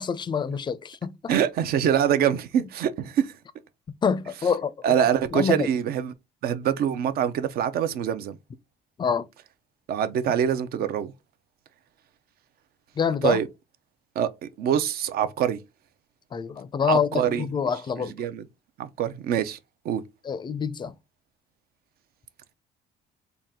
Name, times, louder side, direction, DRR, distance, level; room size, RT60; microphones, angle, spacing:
voice 1, 0.0-1.3 4.0-4.7 5.3-5.7 9.0-9.3 13.0-13.4 16.3-18.1 20.2-20.9, left 6 dB, 25° left, 0.4 m, -26 dB
voice 2, 1.3-3.3 4.8-6.1 6.4-8.4 9.9-11.1 13.2-13.5 14.2-15.6 16.8-17.5 18.0-18.4 18.8-19.6 19.8-20.0, right 9 dB, 65° right, 0.6 m, -24 dB
4.0 x 2.4 x 3.6 m
cardioid pair, 110°, 17 cm